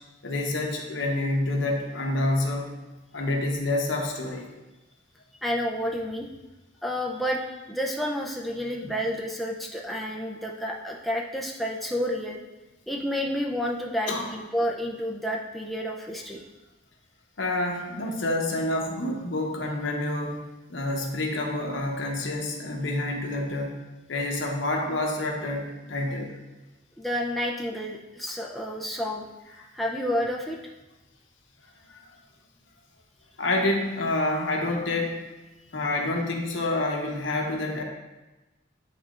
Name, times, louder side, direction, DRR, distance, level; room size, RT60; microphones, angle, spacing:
voice 1, 0.2-2.7 3.1-4.4 14.1-14.3 17.4-20.4 20.7-23.8 24.1-26.3 29.6-29.7 31.9-32.0 33.4-35.2 35.7-37.8, left 2 dB, 70° left, 1 dB, 0.9 m, -28 dB
voice 2, 5.4-6.3 6.8-12.4 12.9-16.4 27.0-29.3 29.7-30.6, equal, ahead, -2 dB, 0.4 m, -30 dB
9.3 x 4.2 x 2.4 m, 1.1 s
head